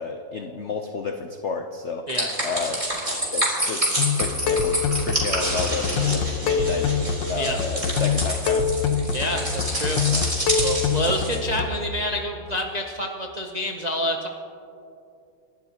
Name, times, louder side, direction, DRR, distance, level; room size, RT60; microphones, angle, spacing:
voice 1, 0.0-2.1 2.4-2.8 3.3-8.7 9.1-9.5 10.1-10.3 10.7-10.9, left 4 dB, 85° left, 5 dB, 0.6 m, -31 dB
sound 1, 2.1-11.4, right 1 dB, 15° right, 3.0 m, -28 dB
sound 2, 4.0-11.7, left 6 dB, 70° left, 1.6 m, -25 dB
voice 2, 9.1-10.0 10.6-14.3, left 1 dB, 70° right, 1 dB, 0.4 m, -28 dB
28.5 x 12.0 x 2.9 m, 2.7 s
omnidirectional pair, 2.1 m